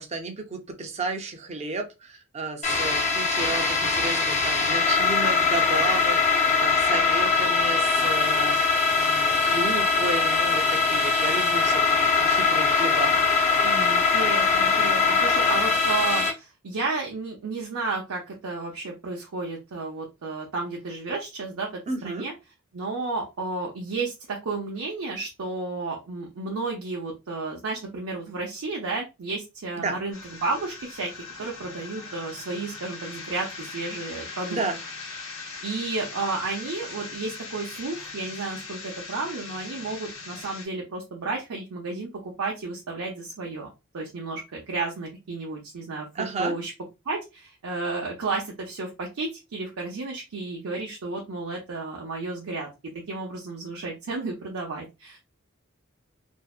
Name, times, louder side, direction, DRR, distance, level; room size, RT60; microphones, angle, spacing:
voice 1, 0.0-13.2 21.9-22.3 29.8-29.9 34.5-34.8 46.1-46.6, right 3 dB, 30° right, 5 dB, 0.5 m, -32 dB
sound 1, 2.6-16.3, left 4 dB, 35° left, 0.5 m, -22 dB
voice 2, 13.6-22.3 22.7-31.1 31.4-34.6 35.6-43.7 43.9-46.7 47.1-52.7 53.1-55.2, right 3 dB, 80° right, -1 dB, 0.6 m, -32 dB
sound 2, 30.1-40.7, left 4 dB, 65° left, 1.0 m, -40 dB
2.5 x 2.1 x 2.3 m, 0.25 s
head